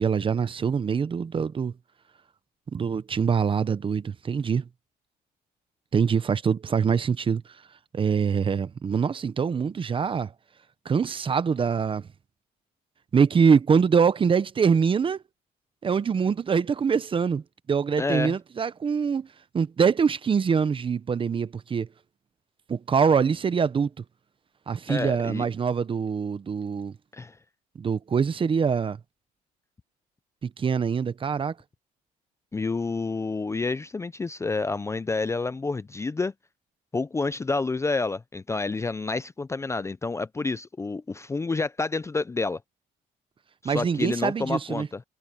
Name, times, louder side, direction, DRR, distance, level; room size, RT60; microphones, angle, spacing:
voice 1, 0.0-1.7 2.7-4.7 5.9-7.4 7.9-10.3 10.8-12.1 13.1-15.2 15.8-17.4 17.7-19.3 19.5-21.9 22.7-24.0 24.7-26.9 27.8-29.0 30.4-31.5 43.6-44.9, right 6 dB, 30° right, 0.9 m, -24 dB
voice 2, 18.0-18.4 24.9-25.5 27.1-27.4 32.5-36.3 36.9-42.6 43.6-45.0, left 3 dB, 15° left, 0.5 m, -29 dB
cardioid pair, 110°, 17 cm